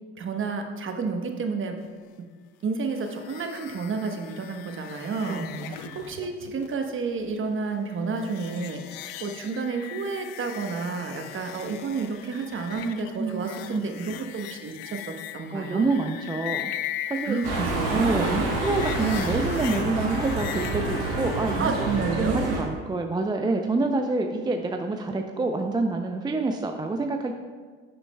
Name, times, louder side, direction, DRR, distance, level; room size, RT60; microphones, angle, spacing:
voice 1, 0.2-1.8 2.6-15.8 17.3-18.5 21.6-22.5, right 4 dB, 35° right, 4 dB, 1.1 m, -30 dB
sound 1, 2.9-21.7, left 12 dB, 70° left, 0.6 m, -39 dB
voice 2, 5.3-6.0 13.2-13.9 15.5-16.7 17.1-17.4 17.9-21.9 22.2-27.3, right 3 dB, 15° right, 4 dB, 0.5 m, -27 dB
sound 2, 17.4-22.6, right 2 dB, 85° right, 1.6 m, -28 dB
11.0 x 6.8 x 2.2 m, 1.5 s
hypercardioid pair, 65°, 33 cm